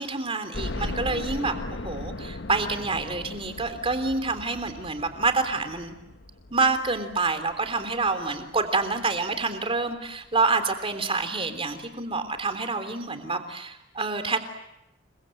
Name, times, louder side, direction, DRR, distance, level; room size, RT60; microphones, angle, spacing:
voice 1, 0.0-6.0 6.5-14.4, right 3 dB, 30° right, 8 dB, 3.4 m, -27 dB
sound 1, 0.5-9.4 9.9-10.0 10.4-10.5 11.7-11.8 12.1-12.2, left 2 dB, 65° left, 1.2 m, -38 dB
30.0 x 23.5 x 7.8 m, 0.88 s
head